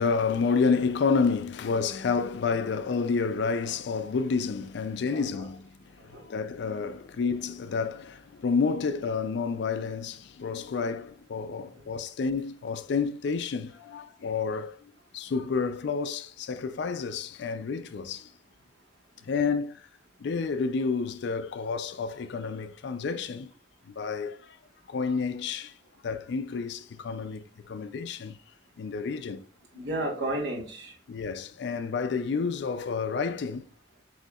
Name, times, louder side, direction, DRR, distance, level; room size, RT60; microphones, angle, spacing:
voice 1, 0.0-18.3 19.2-19.9 20.2-23.5 23.9-24.6 24.9-25.7 26.0-28.4 28.8-29.4 29.7-29.8 31.1-33.7, left 5 dB, 60° left, 0.4 m, -30 dB
voice 2, 5.1-5.5 6.0-6.3 13.8-14.1 29.8-31.0, right 1 dB, 60° right, 1.4 m, -34 dB
7.7 x 2.7 x 2.3 m
head